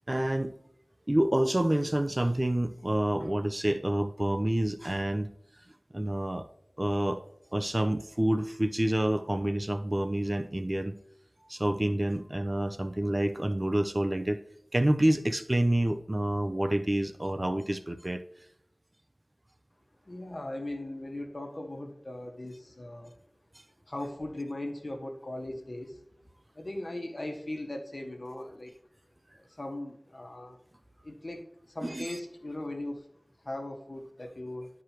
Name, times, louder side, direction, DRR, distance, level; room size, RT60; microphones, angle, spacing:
voice 1, 0.1-0.5 1.1-5.3 5.9-6.5 6.8-7.2 7.5-10.9 11.5-14.4 14.7-18.2 31.8-32.2, right 1 dB, 35° right, 0.5 m, -28 dB
voice 2, 20.0-23.1 23.9-26.0 26.5-28.7 29.3-30.6 31.0-33.0 33.4-34.7, left 1 dB, 55° left, 1.4 m, -39 dB
11.0 x 4.8 x 3.0 m
wide cardioid pair, 45°, 0 cm